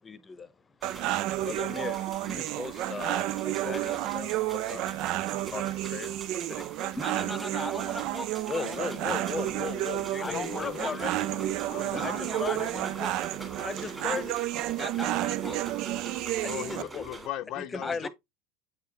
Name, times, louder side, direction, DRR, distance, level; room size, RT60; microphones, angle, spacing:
voice 1, 0.0-0.5 1.4-5.0 5.5-6.1 6.5-7.0 8.5-11.2 12.0-12.7 13.6-14.4 16.4-17.1 17.6-18.1, left 5 dB, 20° left, 0.8 m, -37 dB
sound 1, 0.8-17.3, right 2 dB, 20° right, 2.7 m, -45 dB
sound 2, 0.8-16.8, right 15 dB, 55° right, 0.3 m, -31 dB
Wind instrument woodwind instrument, 1.3-6.2, right 1 dB, 80° right, 2.9 m, -55 dB
voice 2, 7.0-8.3 8.6-9.2 10.2-11.0 11.9-13.2 14.8-15.6 17.8-18.1, left 1 dB, 5° left, 1.2 m, -38 dB
voice 3, 10.2-11.0 11.3-12.8 16.4-18.1, left 13 dB, 55° left, 0.6 m, -39 dB
8.0 x 4.8 x 3.0 m
hypercardioid pair, 100°, 0 cm